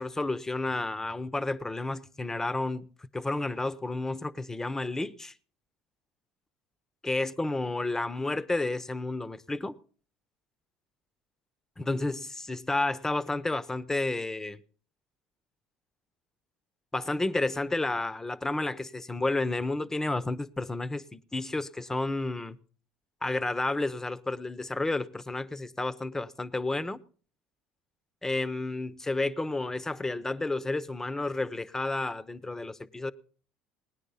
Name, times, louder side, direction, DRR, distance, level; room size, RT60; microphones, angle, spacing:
voice 1, 0.0-2.9 3.1-5.3 7.0-9.8 11.8-14.6 16.9-22.6 23.2-27.0 28.2-33.1, left 2 dB, 15° left, 0.9 m, -31 dB
18.5 x 9.9 x 5.5 m
supercardioid pair, 85°, 3 cm